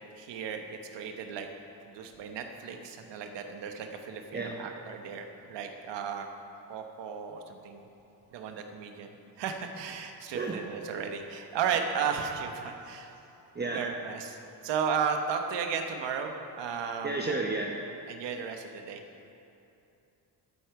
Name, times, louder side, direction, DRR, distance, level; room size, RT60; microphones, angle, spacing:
voice 1, 0.2-1.5 1.8-6.3 6.7-7.9 8.3-13.1 13.7-14.4 14.6-17.4 18.1-19.0, right 6 dB, 80° right, 5 dB, 1.2 m, -34 dB
voice 2, 4.3-4.6 10.3-10.6 13.5-13.8 17.0-17.7, right 3 dB, 25° right, 0 dB, 0.9 m, -32 dB
13.0 x 8.7 x 4.7 m, 2.9 s
cardioid pair, 80°, 42 cm